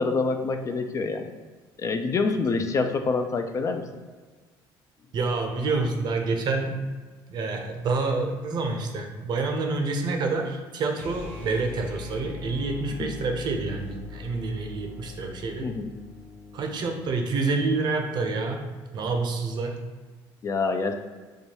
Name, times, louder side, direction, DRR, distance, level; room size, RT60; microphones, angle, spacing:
voice 1, 0.0-1.3 1.8-3.8 13.0-13.1 15.6-15.9 20.4-20.9, left 4 dB, 35° left, 7 dB, 0.3 m, -26 dB
voice 2, 5.1-6.8 7.3-15.7 16.5-18.7 18.9-19.8, right 3 dB, 50° right, 3 dB, 0.6 m, -28 dB
sound 1, 10.9-17.0, left 5 dB, 15° left, 1.0 m, -41 dB
4.6 x 2.2 x 2.8 m, 1.4 s
cardioid pair, 100°, 9 cm